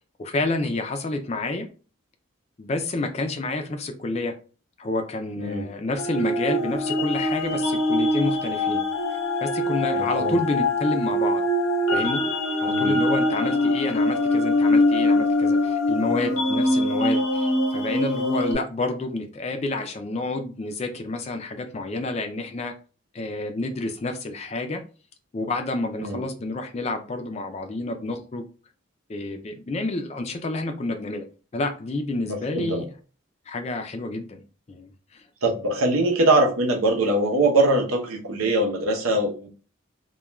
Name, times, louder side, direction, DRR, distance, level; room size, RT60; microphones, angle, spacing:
voice 1, 0.2-1.7 2.6-4.3 4.8-8.8 9.4-11.4 11.9-12.2 12.6-22.7 23.1-24.8 25.3-28.4 29.1-31.2 31.5-32.9 33.5-34.4 34.7-35.2, left 2 dB, 30° left, 0.3 m, -29 dB
sound 1, 6.0-18.5, left 1 dB, 80° left, 0.6 m, -23 dB
voice 2, 9.9-10.4 12.7-12.9 26.0-26.2 32.3-32.8 35.4-39.5, right 2 dB, 85° right, 0.7 m, -22 dB
2.3 x 2.2 x 3.0 m
head